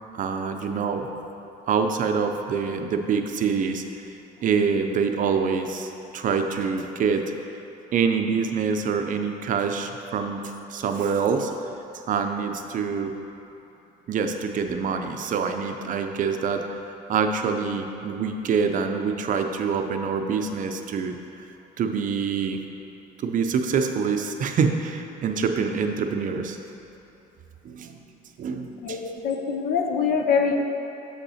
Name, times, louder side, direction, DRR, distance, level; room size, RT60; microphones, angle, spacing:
voice 1, 0.1-1.1 1.7-3.8 4.4-7.2 7.9-10.4 10.7-11.5 12.1-13.1 14.1-16.6 17.1-21.1 21.8-22.6 23.2-26.6 27.6-28.0 28.4-29.0, right 6 dB, 50° right, 5 dB, 0.5 m, -25 dB
voice 2, 28.8-30.7, left 5 dB, 65° left, 3 dB, 0.7 m, -24 dB
6.5 x 5.5 x 4.2 m, 2.9 s
cardioid pair, 110°, 17 cm